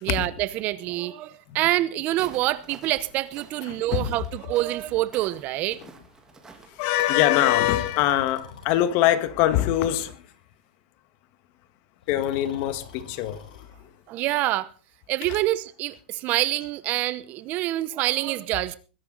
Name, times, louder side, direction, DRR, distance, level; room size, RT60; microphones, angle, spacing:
voice 1, 0.0-5.8 14.1-14.7 15.1-18.8, right 16 dB, 40° right, 0.9 m, -26 dB
Walk footsteps, 2.1-7.4, right 4 dB, 15° right, 3.1 m, -49 dB
voice 2, 3.7-4.1 6.7-10.2 12.1-13.9, left 13 dB, 45° left, 1.7 m, -23 dB
Breathing, 7.5-8.9 9.7-10.3 12.0-13.7, left 6 dB, 85° left, 4.9 m, -45 dB
21.0 x 11.0 x 4.0 m
supercardioid pair, 150°, 4 cm